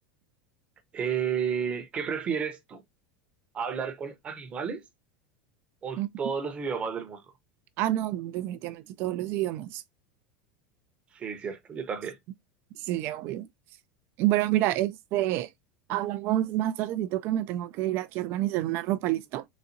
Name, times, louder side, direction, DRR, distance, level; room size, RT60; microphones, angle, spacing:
voice 1, 0.9-2.8 3.5-4.8 5.8-7.3 11.1-12.2, right 7 dB, 25° right, 0.8 m, -32 dB
voice 2, 7.8-9.8 12.8-13.5 14.2-15.5 15.9-19.5, right 14 dB, 45° right, 0.3 m, -28 dB
4.0 x 2.3 x 2.5 m
supercardioid pair, 155°, 5 cm